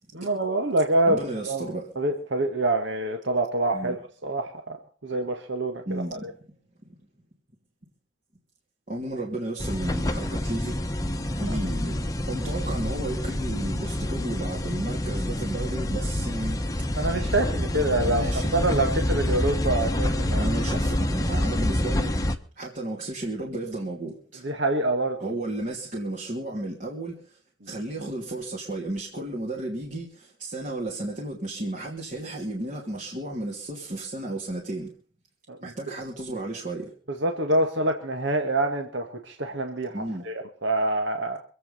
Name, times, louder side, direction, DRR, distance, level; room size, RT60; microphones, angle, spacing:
voice 1, 0.1-1.2 1.5-1.7 2.0-4.8 5.0-6.3 17.0-20.5 24.4-25.2 35.5-35.6 37.2-41.4, right 2 dB, 65° right, 1.8 m, -26 dB
voice 2, 1.1-1.9 3.7-4.0 5.9-6.3 6.8-6.9 8.9-10.8 11.4-16.6 18.0-18.5 20.4-22.1 22.6-24.4 25.2-27.4 27.6-34.9 35.6-36.9 39.9-40.2, right 1 dB, 40° right, 2.8 m, -33 dB
sound 1, 9.6-22.4, left 1 dB, 15° left, 1.0 m, -27 dB
25.5 x 8.5 x 5.4 m
head